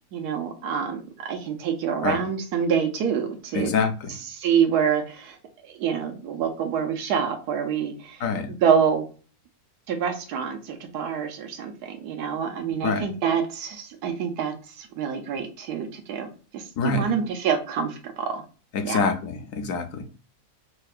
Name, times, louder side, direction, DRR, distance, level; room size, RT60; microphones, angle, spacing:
voice 1, 0.1-3.7 4.3-5.4 5.6-8.3 8.6-9.1 9.9-18.4 18.8-19.0, right 7 dB, 80° right, 4 dB, 1.3 m, -26 dB
voice 2, 3.5-4.1 8.2-8.5 12.8-13.0 16.8-17.0 18.7-20.0, left 4 dB, 65° left, 6 dB, 1.0 m, -25 dB
4.6 x 2.2 x 2.3 m, 0.37 s
omnidirectional pair, 1.6 m